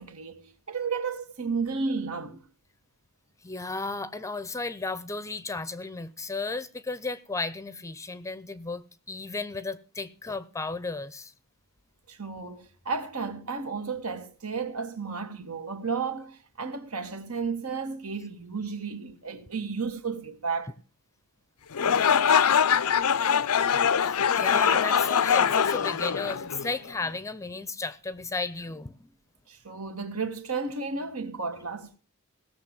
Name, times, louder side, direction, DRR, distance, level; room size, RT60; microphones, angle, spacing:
voice 1, 0.0-2.4 12.1-20.7 29.5-32.0, right 5 dB, 70° right, 2.1 m, -33 dB
voice 2, 3.4-11.3 24.0-29.1, left 3 dB, 15° left, 0.7 m, -34 dB
sound 1, 21.7-26.9, left 7 dB, 80° left, 0.6 m, -23 dB
18.0 x 6.8 x 7.5 m
head